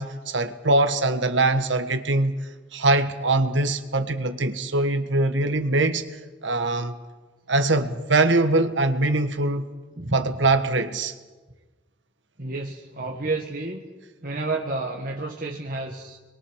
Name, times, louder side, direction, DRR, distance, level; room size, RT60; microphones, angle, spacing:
voice 1, 0.0-2.3 2.7-7.0 7.5-9.7 10.1-11.1, right 2 dB, 80° right, 1.5 m, -22 dB
voice 2, 9.9-10.3 12.4-13.8 14.2-16.2, right 2 dB, 50° right, 1.7 m, -30 dB
27.0 x 22.5 x 6.4 m
head